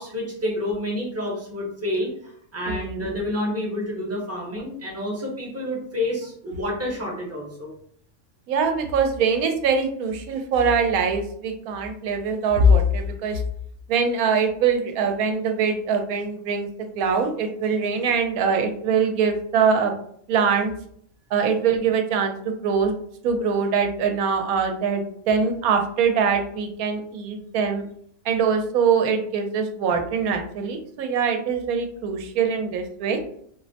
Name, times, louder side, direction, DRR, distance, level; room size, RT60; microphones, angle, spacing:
voice 1, 0.0-7.7, left 1 dB, 15° right, -3 dB, 0.6 m, -29 dB
voice 2, 8.5-13.4 13.9-16.7 16.9-19.9 20.3-20.7 21.3-22.4 22.6-22.9 23.2-27.8 28.2-33.2, right 5 dB, 85° right, 5 dB, 1.0 m, -23 dB
4.0 x 2.1 x 2.7 m, 0.65 s
omnidirectional pair, 1.5 m